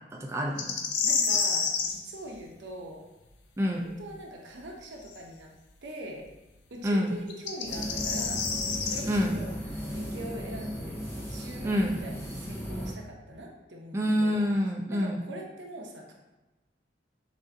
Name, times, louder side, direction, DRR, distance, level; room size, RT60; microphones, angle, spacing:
voice 1, 0.1-0.8 3.6-3.9 6.8-7.1 9.1-9.4 11.6-11.9 13.9-15.2, equal, 15° right, -1 dB, 0.4 m, -27 dB
sound 1, 0.6-1.9 5.1-5.2 7.3-9.0, left 5 dB, 75° left, 0.6 m, -28 dB
voice 2, 1.0-3.1 3.8-5.5 5.8-6.3 6.7-8.5 8.8-14.4 14.9-16.1, right 1 dB, 80° right, 0 dB, 0.8 m, -43 dB
sound 2, 7.7-12.9, equal, 15° left, 0.8 m, -36 dB
6.4 x 2.6 x 2.7 m, 1.1 s
head